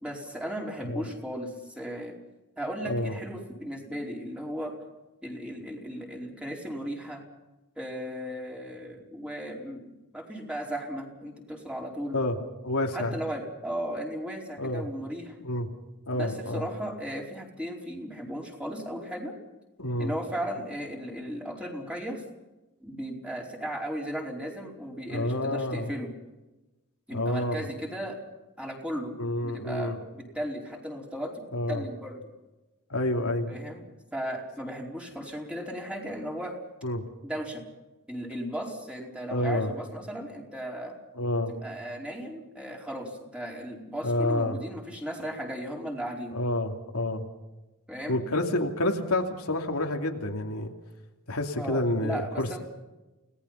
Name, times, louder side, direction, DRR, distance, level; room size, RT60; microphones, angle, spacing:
voice 1, 0.0-2.2 2.6-4.7 5.2-7.2 7.8-12.2 12.9-15.3 16.1-19.3 20.0-22.2 22.8-26.1 27.1-28.2 28.6-32.2 33.5-33.9 34.1-36.5 37.2-37.6 38.1-40.9 41.5-46.4 47.9-48.2 51.5-52.6, equal, 5° right, -1 dB, 4.6 m, -36 dB
voice 2, 2.8-3.1 12.1-12.4 12.6-13.2 14.6-14.9 15.4-15.7 16.1-16.7 19.8-20.1 25.1-25.9 27.1-27.7 29.2-30.0 31.5-31.8 32.9-33.6 36.8-37.0 39.3-39.7 41.1-41.5 44.0-44.6 46.3-47.2 48.1-50.7 51.3-52.6, left 1 dB, 80° left, 2 dB, 2.9 m, -28 dB
30.0 x 18.5 x 5.8 m, 1.1 s
head